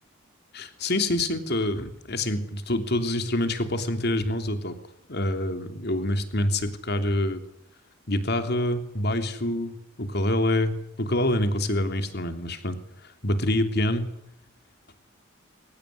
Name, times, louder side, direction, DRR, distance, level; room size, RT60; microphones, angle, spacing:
voice 1, 0.5-4.8 5.1-7.4 8.1-10.7 11.0-12.8 13.2-14.1, left 1 dB, 55° left, 7 dB, 3.2 m, -26 dB
23.5 x 19.0 x 10.0 m, 0.76 s
head